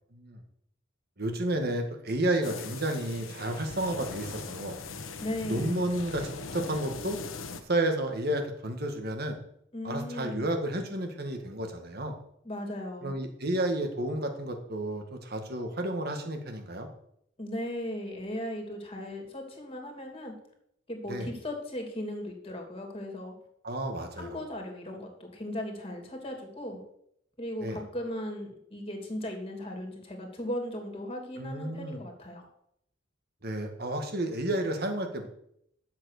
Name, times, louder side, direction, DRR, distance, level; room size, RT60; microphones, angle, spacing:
voice 1, 1.2-4.8 5.5-7.2 7.7-9.4 9.8-12.2 13.0-16.9 21.1-21.3 23.6-24.4 27.6-27.8 31.4-32.0 33.4-35.3, right 1 dB, 50° right, 5 dB, 1.9 m, -31 dB
sound 1, 2.4-7.6, left 4 dB, 90° left, 1.1 m, -40 dB
voice 2, 5.2-5.8 9.7-10.4 12.4-13.1 17.4-20.3 20.9-23.3 24.2-26.8 27.4-32.5, left 1 dB, 30° left, 3 dB, 2.8 m, -37 dB
10.5 x 7.7 x 6.6 m, 0.72 s
head